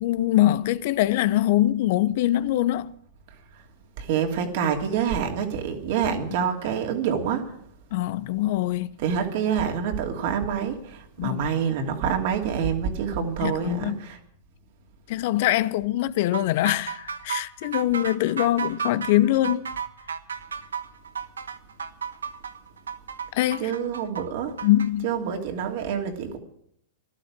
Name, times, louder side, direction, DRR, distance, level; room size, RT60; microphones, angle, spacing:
voice 1, 0.0-2.9 6.4-6.5 7.9-8.9 11.2-11.4 13.2-14.0 15.1-19.7 23.3-23.7 24.6-25.1, left 14 dB, 55° left, 0.7 m, -23 dB
voice 2, 4.0-7.6 9.0-14.2 23.6-24.7 25.0-26.4, right 7 dB, 60° right, 2.9 m, -27 dB
sound 1, 16.3-24.9, right 6 dB, 90° right, 1.1 m, -33 dB
14.5 x 12.0 x 7.5 m
hypercardioid pair, 115°, 0 cm